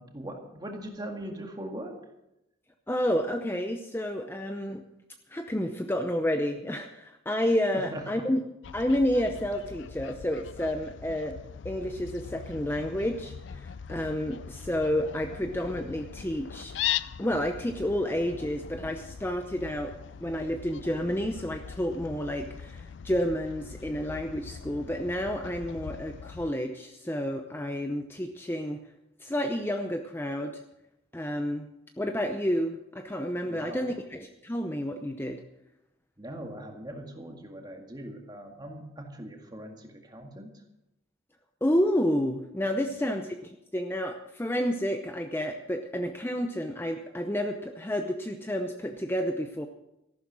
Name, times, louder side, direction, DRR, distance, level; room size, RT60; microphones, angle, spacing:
voice 1, 0.0-2.0 7.7-8.3 33.4-34.0 36.2-40.6 42.8-43.1, right 1 dB, 20° right, 3 dB, 2.0 m, -41 dB
voice 2, 2.9-4.8 5.3-8.4 8.7-11.4 11.6-16.7 17.2-19.9 20.2-28.8 29.2-30.6 31.1-31.7 32.0-35.4 41.6-49.7, equal, 10° left, 5 dB, 0.7 m, -30 dB
Fowl, 8.6-26.5, left 9 dB, 65° left, 0.4 m, -40 dB
14.0 x 11.5 x 6.1 m, 0.88 s
head